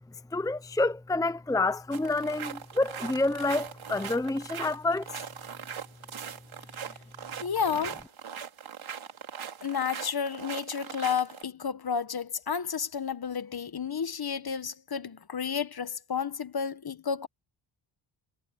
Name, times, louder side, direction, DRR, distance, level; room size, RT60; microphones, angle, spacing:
voice 1, 0.3-5.1, left 2 dB, 5° left, 0.8 m, -28 dB
sound 1, 1.9-11.4, right 7 dB, 70° right, 3.9 m, -40 dB
voice 2, 7.4-8.0 9.6-17.3, left 6 dB, 45° left, 1.6 m, -31 dB
cardioid pair, 65°, 50 cm